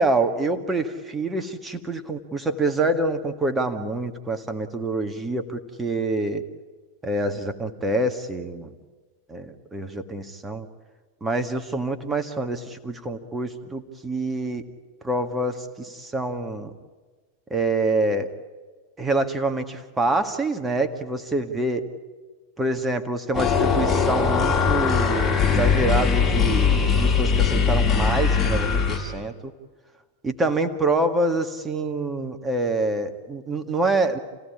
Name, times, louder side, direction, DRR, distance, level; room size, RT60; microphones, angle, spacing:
voice 1, 0.0-6.4 7.0-8.7 9.3-10.7 11.2-14.6 15.0-16.7 17.5-18.3 19.0-21.8 22.6-29.5 30.2-34.2, right 2 dB, 15° right, 7 dB, 1.9 m, -26 dB
sound 1, 23.3-29.0, left 6 dB, 25° left, 6.1 m, -20 dB
29.0 x 17.0 x 9.9 m, 1.4 s
figure-of-eight pair, 90°, 0 cm